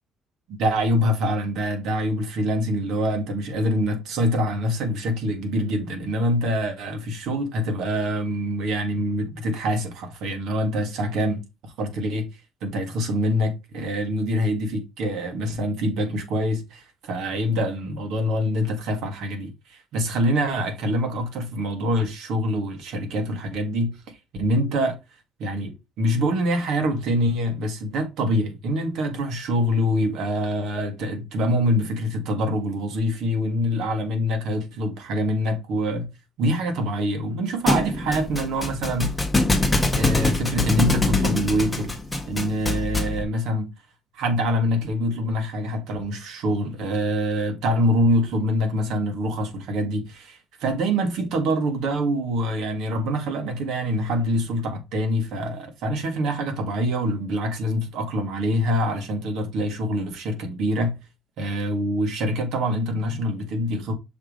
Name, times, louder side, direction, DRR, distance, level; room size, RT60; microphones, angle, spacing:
voice 1, 0.5-12.3 12.6-24.0 24.4-25.0 25.4-36.1 36.4-39.2 39.9-41.9 42.2-43.7 44.1-61.0 61.4-63.9, equal, 75° right, 1.9 m, -25 dB
Thump thud, 37.7-43.2, left 2 dB, 10° left, 1.2 m, -23 dB
6.4 x 3.2 x 5.2 m
cardioid pair, 155°, 0 cm